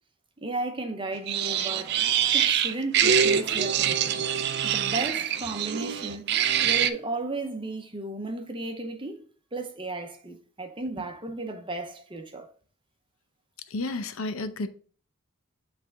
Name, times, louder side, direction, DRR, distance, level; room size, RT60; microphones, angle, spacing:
voice 1, 0.4-2.0 2.3-4.2 4.6-6.3 6.6-9.2 9.5-12.5, right 2 dB, 25° right, 0.8 m, -34 dB
sound 1, 1.3-6.9, right 8 dB, 50° right, 0.4 m, -24 dB
voice 2, 13.7-14.7, left 2 dB, 85° left, 0.7 m, -31 dB
8.2 x 3.4 x 3.5 m
head